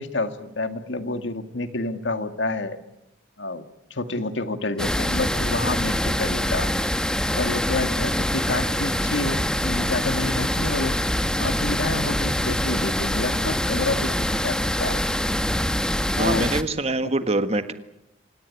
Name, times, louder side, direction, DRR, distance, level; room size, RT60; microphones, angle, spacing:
voice 1, 0.0-2.8 3.4-3.6 3.9-6.7 7.3-11.0 11.4-15.0 16.2-16.6 17.0-17.1, left 2 dB, 75° left, 9 dB, 1.9 m, -28 dB
sound 1, 4.8-16.6, left 1 dB, 5° left, 1.1 m, -24 dB
voice 2, 16.2-17.7, right 2 dB, 35° right, 9 dB, 1.6 m, -24 dB
26.5 x 18.5 x 9.5 m, 0.89 s
head